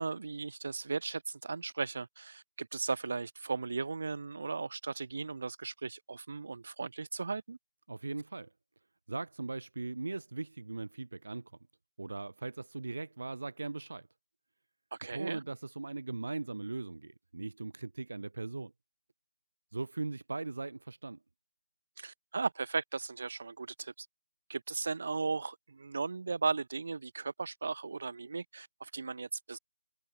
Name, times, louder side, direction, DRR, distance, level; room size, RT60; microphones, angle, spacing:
voice 1, 0.0-7.6 15.0-15.4 22.0-24.1 24.5-29.6, right 4 dB, 55° right, 2.2 m, -36 dB
voice 2, 7.9-8.5 9.1-11.5 12.0-14.1 15.1-18.7 19.7-21.2, right 3 dB, 75° right, 1.7 m, -39 dB
figure-of-eight pair, 170°, 0 cm